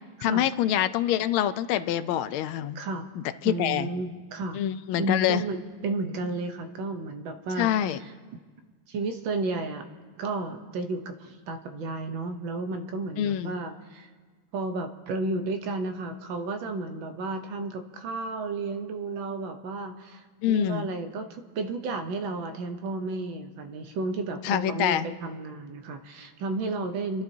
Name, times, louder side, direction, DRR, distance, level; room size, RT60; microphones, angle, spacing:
voice 1, 0.2-2.8 3.2-3.9 4.5-5.4 7.6-8.0 13.2-13.6 20.4-20.9 24.4-25.1, left 11 dB, 85° left, 13 dB, 1.4 m, -26 dB
voice 2, 2.7-3.1 3.4-4.6 5.0-8.1 8.9-9.9 10.2-14.1 14.5-27.2, right 3 dB, 70° right, 7 dB, 1.5 m, -32 dB
30.0 x 12.0 x 2.7 m, 1.5 s
omnidirectional pair, 2.3 m